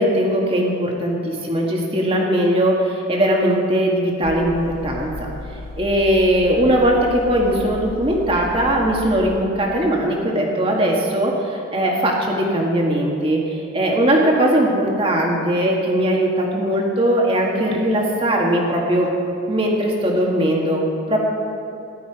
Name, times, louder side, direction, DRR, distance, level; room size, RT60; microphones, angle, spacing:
voice 1, 0.0-5.3 5.8-19.1 19.5-21.2, right 1 dB, 25° right, -1 dB, 1.9 m, -19 dB
sound 1, 4.2-9.4, left 2 dB, 85° left, 1.0 m, -35 dB
15.0 x 12.0 x 5.0 m, 2.6 s
head